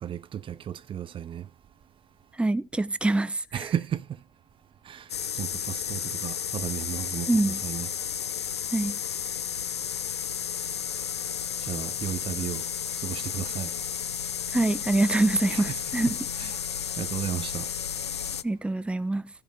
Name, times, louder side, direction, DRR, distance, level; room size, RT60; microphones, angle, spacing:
voice 1, 0.0-1.5 3.5-4.0 4.8-7.9 11.6-12.7 13.0-13.7 15.5-15.8 16.4-16.6 17.0-17.7, right 10 dB, 40° right, 0.7 m, -34 dB
voice 2, 2.4-3.6 7.3-7.6 8.7-9.0 14.5-16.2 18.4-19.3, right 2 dB, 10° right, 0.8 m, -25 dB
sound 1, 5.1-18.4, left 8 dB, 90° left, 0.5 m, -32 dB
15.0 x 5.2 x 4.8 m
hypercardioid pair, 65°, 14 cm